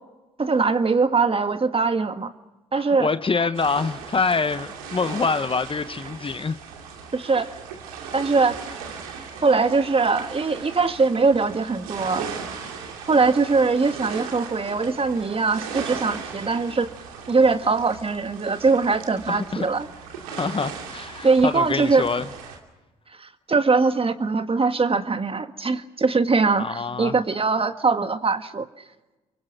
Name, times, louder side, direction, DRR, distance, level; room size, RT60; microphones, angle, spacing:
voice 1, 0.4-2.3 2.7-3.1 7.1-7.5 8.1-8.6 9.4-12.3 13.1-16.9 17.3-19.9 21.2-22.1 23.2-28.7, right 4 dB, 30° right, 1.7 m, -21 dB
voice 2, 2.7-6.6 19.3-19.7 20.4-22.2 26.6-27.1, left 4 dB, 30° left, 1.1 m, -25 dB
sound 1, 3.5-22.6, right 6 dB, 85° right, 2.7 m, -37 dB
30.0 x 24.0 x 6.1 m
hypercardioid pair, 50°, 18 cm